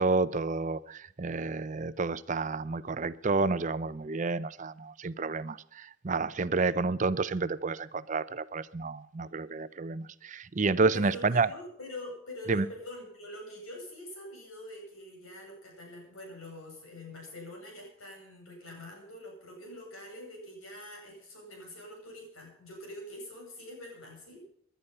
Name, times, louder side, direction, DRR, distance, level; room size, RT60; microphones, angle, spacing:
voice 1, 0.0-11.5 12.5-12.6, right 3 dB, 35° right, 16 dB, 0.5 m, -30 dB
voice 2, 10.9-24.4, left 1 dB, 85° left, 1 dB, 7.9 m, -45 dB
18.5 x 11.5 x 5.5 m, 0.66 s
head